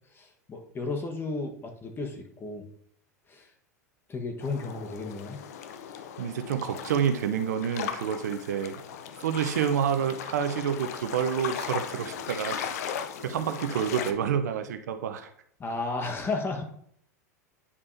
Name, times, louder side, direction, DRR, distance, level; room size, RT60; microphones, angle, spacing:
voice 1, 0.1-2.7 3.3-3.5 4.1-5.4 15.6-16.7, left 3 dB, 25° left, 3 dB, 1.3 m, -33 dB
sound 1, 4.4-14.1, left 8 dB, 65° left, 0.6 m, -38 dB
voice 2, 6.2-8.8 9.2-12.7 13.2-15.3, right 8 dB, 70° right, 9 dB, 0.7 m, -28 dB
9.7 x 5.4 x 2.7 m, 0.67 s
hypercardioid pair, 90°, 9 cm